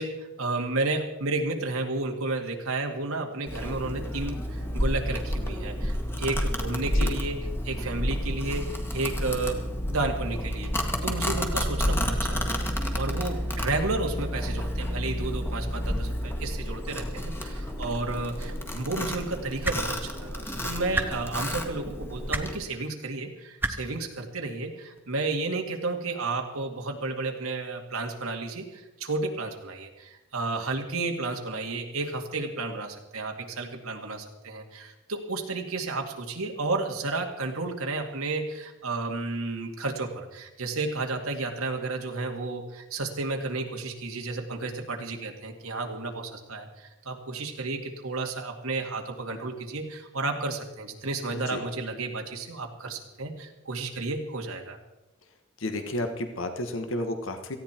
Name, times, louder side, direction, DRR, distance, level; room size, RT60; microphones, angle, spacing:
voice 1, 0.0-10.7 11.0-54.8, right 3 dB, 85° right, 2 dB, 2.2 m, -32 dB
Domestic sounds home sounds, 3.5-22.6, equal, 10° left, 1.7 m, -30 dB
sound 1, 19.6-19.8 20.9-21.1 22.3-22.5 23.6-23.7 25.0-25.1, right 2 dB, 10° right, 1.0 m, -27 dB
voice 2, 55.6-57.6, left 1 dB, 65° left, 6 dB, 1.5 m, -32 dB
18.0 x 15.0 x 4.5 m, 1.0 s
head